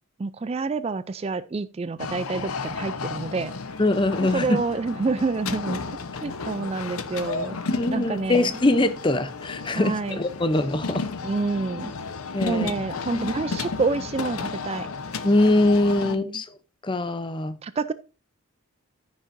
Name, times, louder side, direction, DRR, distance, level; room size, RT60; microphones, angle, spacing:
voice 1, 0.2-3.5 4.3-5.8 6.2-7.6 7.9-8.5 9.7-10.2 11.2-11.9 12.4-14.9 16.2-16.4 17.6-17.9, right 4 dB, 30° right, 0.3 m, -28 dB
sound 1, 2.0-16.2, left 4 dB, 90° left, 0.9 m, -33 dB
voice 2, 3.8-4.6 7.7-11.1 12.3-12.7 13.1-13.3 15.2-16.5 16.8-17.6, left 2 dB, 20° left, 0.6 m, -23 dB
14.0 x 6.3 x 2.6 m
head